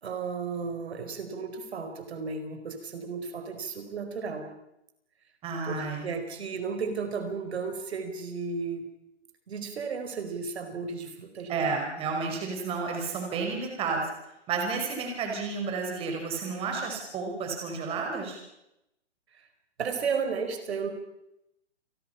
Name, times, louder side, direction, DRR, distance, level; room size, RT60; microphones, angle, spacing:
voice 1, 0.0-4.5 5.6-8.8 9.5-11.7 19.4-19.5 19.8-20.9, right 5 dB, 60° right, 7 dB, 4.8 m, -34 dB
voice 2, 5.4-6.2 11.5-14.1 14.5-18.4, right 4 dB, 15° right, 2 dB, 5.3 m, -31 dB
29.5 x 21.5 x 5.8 m, 0.84 s
hypercardioid pair, 160°, 36 cm